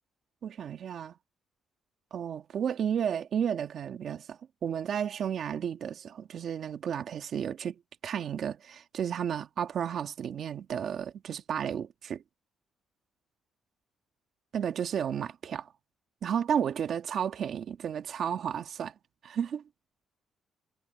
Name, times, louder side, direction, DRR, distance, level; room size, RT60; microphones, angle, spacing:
voice 1, 0.4-1.1 2.1-12.2 14.5-15.7 16.2-18.9 19.2-19.6, right 8 dB, 55° right, 1.6 m, -32 dB
cardioid pair, 130°, 0 cm